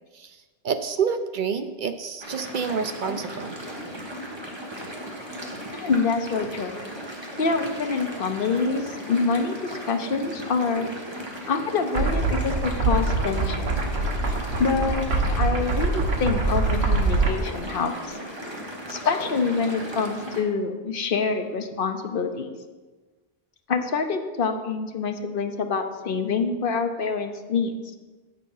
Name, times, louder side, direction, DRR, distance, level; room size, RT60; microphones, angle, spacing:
voice 1, 0.6-3.6, right 6 dB, 60° right, 9 dB, 0.6 m, -28 dB
sound 1, 2.2-20.4, equal, 25° right, 1.4 m, -37 dB
voice 2, 5.7-6.8 7.4-10.9 11.5-13.7 14.6-18.2 18.9-22.5 23.7-27.7, left 4 dB, 60° left, 6 dB, 1.0 m, -26 dB
sound 2, 11.9-17.4, right 3 dB, 80° right, 1.3 m, -24 dB
8.8 x 6.7 x 5.5 m, 1.3 s
omnidirectional pair, 1.0 m